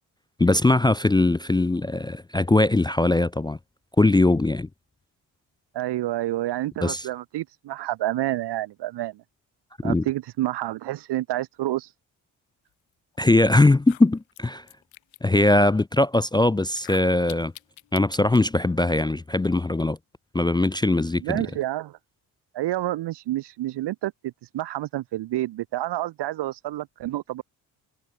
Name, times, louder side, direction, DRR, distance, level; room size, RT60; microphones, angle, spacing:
voice 1, 0.4-3.6 4.0-4.7 6.8-7.0 9.8-10.0 13.2-14.6 15.2-17.5 17.9-20.0 20.3-21.4, left 2 dB, 10° left, 0.5 m, -20 dB
voice 2, 5.7-9.2 9.8-11.9 21.2-22.0 22.5-27.4, right 15 dB, 65° right, 0.7 m, -29 dB
sound 1, 13.1-13.2 13.7-15.4 16.7-18.4, left 19 dB, 85° left, 1.5 m, -46 dB
supercardioid pair, 55°, 45 cm